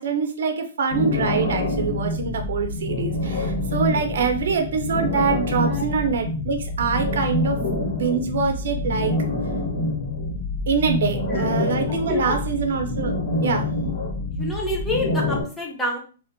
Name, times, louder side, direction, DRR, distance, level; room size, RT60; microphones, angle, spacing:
voice 1, 0.0-7.6 7.9-9.1 10.7-13.1 13.4-13.7, right 5 dB, 65° right, 5 dB, 0.5 m, -24 dB
sound 1, 0.9-15.4, left 2 dB, 65° left, 0.9 m, -26 dB
voice 2, 11.1-11.5 11.9-12.4 14.3-16.0, left 1 dB, 5° left, -1 dB, 0.5 m, -28 dB
2.5 x 2.1 x 2.5 m, 0.38 s
hypercardioid pair, 170°, 0 cm